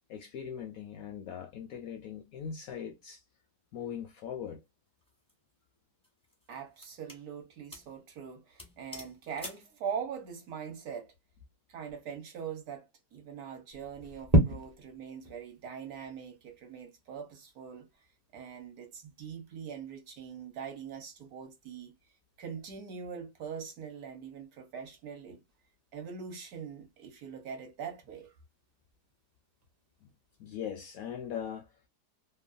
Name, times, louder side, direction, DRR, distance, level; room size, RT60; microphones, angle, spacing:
voice 1, 0.1-3.2 3.7-4.6 30.4-31.7, left 8 dB, 70° left, 0.8 m, -40 dB
sound 1, 5.0-5.3 6.0-7.3 7.7-8.0 8.2-8.3 8.6-9.7, left 1 dB, 5° left, 0.4 m, -47 dB
voice 2, 6.5-11.1 11.7-17.9 18.3-21.9 22.4-25.4 25.9-28.3, right 7 dB, 65° right, 1.2 m, -42 dB
sound 2, 13.7-30.8, right 1 dB, 35° right, 0.6 m, -38 dB
3.0 x 2.2 x 2.4 m
omnidirectional pair, 1.9 m